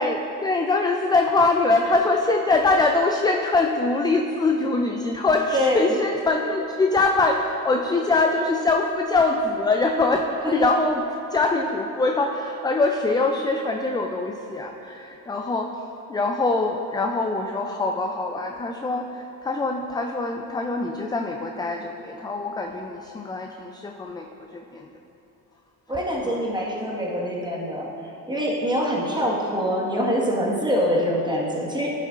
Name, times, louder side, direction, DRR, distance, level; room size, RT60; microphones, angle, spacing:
voice 1, 0.0-11.0 11.3-15.8 16.1-24.3 24.5-24.9 26.2-26.4, left 3 dB, 10° left, 3 dB, 0.3 m, -23 dB
voice 2, 5.5-6.0 10.6-10.7 25.9-27.9 28.3-31.9, equal, 10° right, -4 dB, 1.6 m, -24 dB
10.0 x 6.5 x 2.5 m, 3.0 s
supercardioid pair, 70°, 37 cm